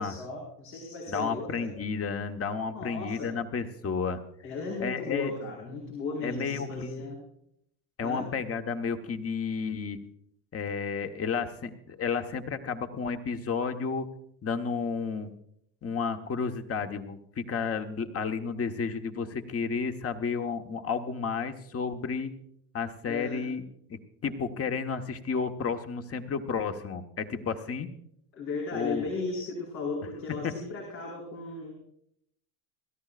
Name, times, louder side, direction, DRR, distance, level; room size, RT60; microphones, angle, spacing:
voice 1, 0.0-1.7 2.7-3.3 4.4-7.2 8.0-8.3 23.0-23.5 24.2-24.3 28.3-31.7, left 3 dB, 80° left, -3 dB, 5.2 m, -36 dB
voice 2, 1.1-4.2 4.8-5.3 6.2-7.0 8.0-10.0 10.5-14.1 14.4-15.3 15.8-22.3 22.7-23.6 23.9-27.9 28.7-29.0 30.4-30.5, left 5 dB, 30° left, 6 dB, 1.4 m, -32 dB
28.5 x 13.5 x 2.5 m, 0.71 s
hypercardioid pair, 80°, 48 cm